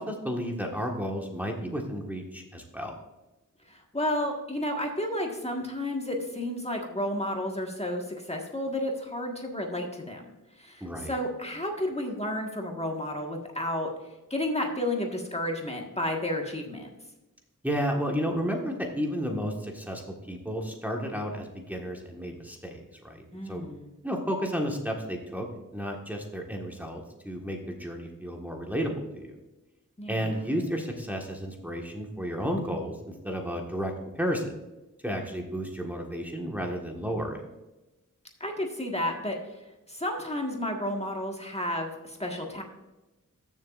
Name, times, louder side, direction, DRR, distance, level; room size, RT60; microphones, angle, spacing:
voice 1, 0.0-2.9 10.8-11.1 17.6-23.6 24.0-25.5 25.7-29.3 30.1-34.6 35.0-37.4, equal, 5° right, 0 dB, 1.5 m, -32 dB
voice 2, 3.7-10.3 10.6-13.9 14.3-16.9 23.3-23.9 30.0-30.5 38.4-39.6 39.9-42.6, left 1 dB, 20° left, 1 dB, 1.6 m, -32 dB
14.0 x 7.1 x 2.5 m, 1.0 s
wide cardioid pair, 60°, 33 cm